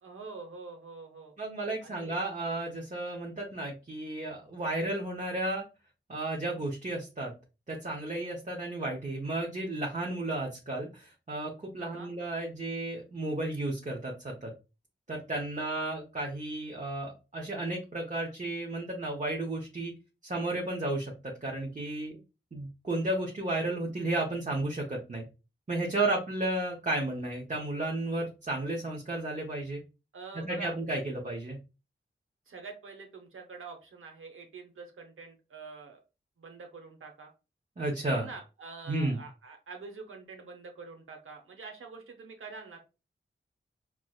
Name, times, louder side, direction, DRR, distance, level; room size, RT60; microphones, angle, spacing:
voice 1, 0.0-1.3 1.8-2.2 11.8-12.1 25.9-26.2 30.1-30.8 32.5-36.0 36.4-37.3 38.1-42.8, right 4 dB, 75° right, 3 dB, 0.8 m, -46 dB
voice 2, 1.4-5.6 6.1-7.3 7.7-14.5 15.1-19.9 20.2-22.1 22.5-25.2 25.7-29.8 30.3-31.6 37.8-38.3 38.9-39.2, right 2 dB, 35° right, -1 dB, 0.9 m, -33 dB
4.6 x 2.1 x 2.3 m, 0.29 s
cardioid pair, 40°, 21 cm